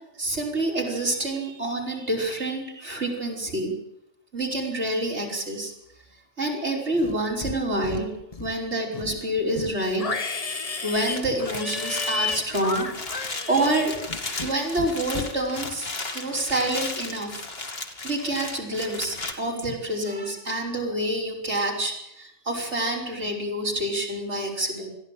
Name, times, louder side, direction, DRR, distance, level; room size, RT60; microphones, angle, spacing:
voice 1, 0.2-3.7 4.3-5.7 6.4-8.1 8.4-10.0 10.8-14.0 14.4-15.9 16.1-17.4 18.0-24.9, right 1 dB, 75° right, -1 dB, 5.6 m, -27 dB
Livestock farm animals working animals, 6.9-7.6 7.8-8.6 8.9-14.5 14.8-15.3, left 4 dB, 35° left, 1.1 m, -32 dB
sound 1, 11.0-19.3, left 3 dB, 55° left, 2.5 m, -35 dB
21.0 x 15.0 x 9.2 m, 0.82 s
omnidirectional pair, 1.2 m